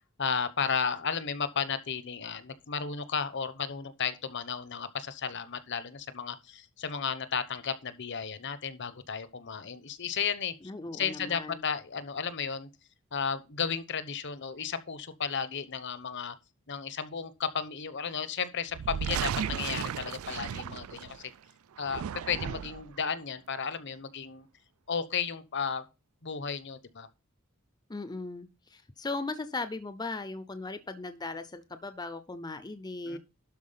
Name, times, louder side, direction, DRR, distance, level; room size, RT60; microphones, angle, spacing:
voice 1, 0.2-10.5 10.9-12.7 13.1-16.3 16.7-21.3 21.8-24.5 24.9-25.8 26.2-27.1 33.1-33.2, left 6 dB, 55° left, 0.9 m, -34 dB
voice 2, 10.6-11.6 27.9-33.2, left 3 dB, 20° left, 0.6 m, -38 dB
sound 1, 18.7-21.3 21.8-22.9, right 8 dB, 80° right, 0.4 m, -35 dB
12.0 x 4.7 x 5.6 m
head